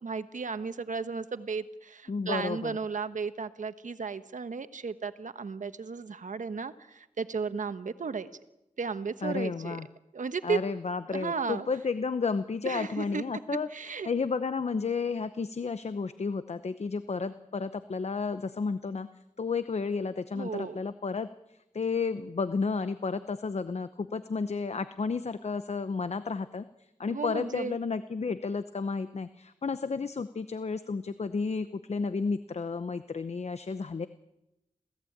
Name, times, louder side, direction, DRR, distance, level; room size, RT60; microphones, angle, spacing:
voice 1, 0.0-8.3 8.8-9.8 10.1-10.6 11.1-11.7 12.6-13.2 13.7-14.1 20.3-20.8 27.1-27.8, right 5 dB, 75° right, 10 dB, 1.3 m, -34 dB
voice 2, 2.1-2.8 9.2-9.9 10.4-13.7 14.1-19.1 19.4-34.1, left 4 dB, 55° left, 12 dB, 0.8 m, -32 dB
27.5 x 17.0 x 8.8 m, 0.92 s
wide cardioid pair, 110°, 13 cm